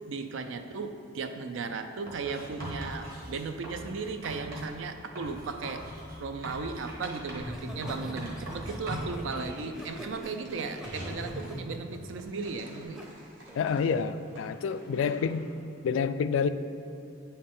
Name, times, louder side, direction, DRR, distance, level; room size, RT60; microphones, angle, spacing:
voice 1, 0.0-5.9 6.2-13.0, right 4 dB, 85° right, 8 dB, 0.5 m, -36 dB
Writing, 2.1-4.7 5.1-7.6 7.8-9.2, equal, 50° right, 1.4 m, -40 dB
Laughter, 7.4-13.1 13.5-13.8, equal, 5° right, 0.5 m, -41 dB
sound 1, 9.3-15.6, equal, 70° right, 1.6 m, -51 dB
voice 2, 13.6-15.5 15.8-16.5, left 6 dB, 90° left, 12 dB, 0.3 m, -28 dB
9.3 x 4.3 x 3.7 m, 2.7 s
head